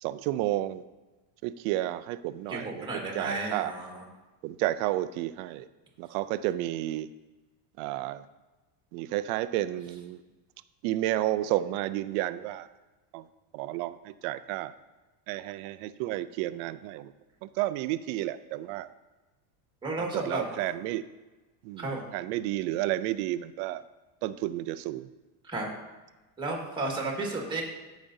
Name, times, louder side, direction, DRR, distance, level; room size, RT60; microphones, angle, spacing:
voice 1, 0.0-0.8 1.4-3.7 4.4-5.7 6.0-7.1 7.8-8.2 8.9-10.2 10.8-12.7 13.1-13.3 13.5-14.7 15.3-17.1 17.4-18.9 20.0-21.1 21.6-23.8 24.2-25.1, right 15 dB, 60° right, 13 dB, 0.5 m, -31 dB
voice 2, 2.5-4.0 19.8-20.6 21.8-22.0 25.4-25.8 26.4-27.6, right 2 dB, 10° right, 0 dB, 1.7 m, -33 dB
13.5 x 5.1 x 2.7 m, 1.2 s
supercardioid pair, 125°, 50 cm